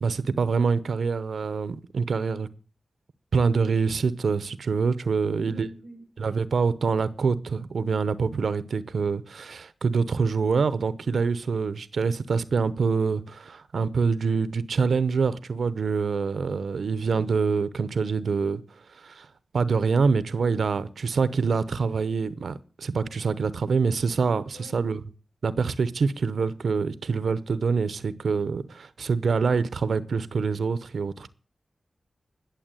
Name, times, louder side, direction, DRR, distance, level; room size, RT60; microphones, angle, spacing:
voice 1, 0.0-2.5 3.3-5.7 6.2-18.6 19.0-19.3 19.5-25.0 25.4-31.3, right 5 dB, 85° right, 0.8 m, -25 dB
voice 2, 5.2-6.0 24.5-24.9, equal, 80° left, 6.9 m, -46 dB
11.5 x 7.2 x 8.9 m
cardioid pair, 50°, 0 cm